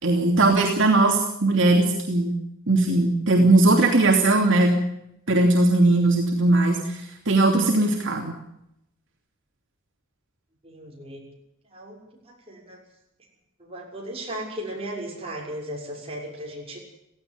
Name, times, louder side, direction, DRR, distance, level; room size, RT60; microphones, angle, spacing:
voice 1, 0.0-2.4 2.7-4.7 5.3-7.0 7.3-8.4, right 2 dB, 65° right, 1 dB, 2.9 m, -19 dB
voice 2, 10.6-11.2 11.7-12.8 13.6-16.8, right 1 dB, 30° right, -2 dB, 6.6 m, -36 dB
17.5 x 16.0 x 9.6 m, 0.80 s
head